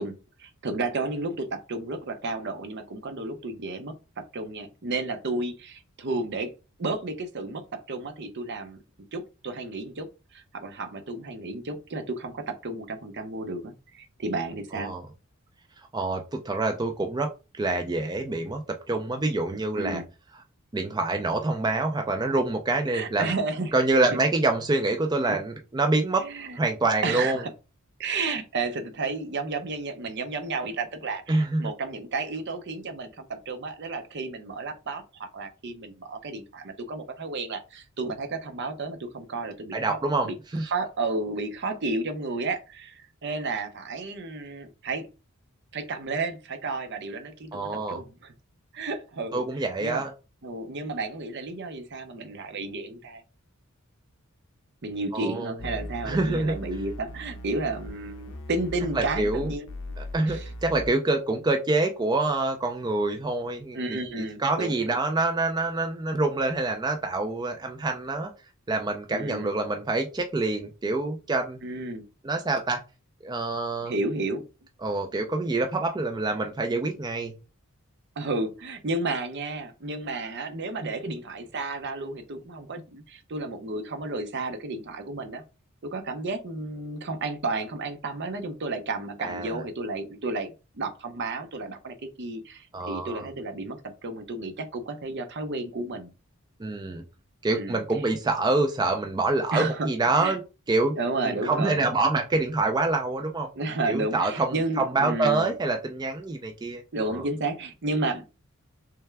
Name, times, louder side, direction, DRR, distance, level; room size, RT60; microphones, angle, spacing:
voice 1, 0.0-3.9 4.3-6.5 6.8-7.6 7.9-8.8 9.1-14.9 19.8-20.1 22.9-23.7 25.3-25.4 26.2-26.6 27.0-27.5 28.0-40.0 40.2-40.3 40.6-45.1 45.7-48.3 48.7-50.0 50.4-53.2 54.8-59.7 60.2-60.5 63.7-64.8 69.1-69.5 71.6-72.0 73.9-74.4 78.2-85.4 85.8-96.1 97.5-97.8 99.5-99.9 100.1-100.4 101.0-101.9 103.5-105.5 106.9-108.2, right 3 dB, 55° right, 0.7 m, -32 dB
voice 2, 15.9-20.0 20.7-23.3 23.7-26.3 26.6-27.4 31.3-31.7 39.7-40.7 47.5-48.0 49.3-50.1 55.1-55.6 56.0-56.6 59.0-59.5 60.0-63.8 64.2-68.3 68.7-71.6 72.2-72.8 73.2-73.9 74.8-77.3 89.2-89.6 92.7-93.3 96.6-97.0 97.4-100.4 100.7-101.0 101.2-103.5 103.9-107.2, right 2 dB, 20° right, 0.4 m, -26 dB
sound 1, 55.6-60.9, left 1 dB, 60° left, 0.5 m, -39 dB
3.4 x 3.3 x 3.4 m
head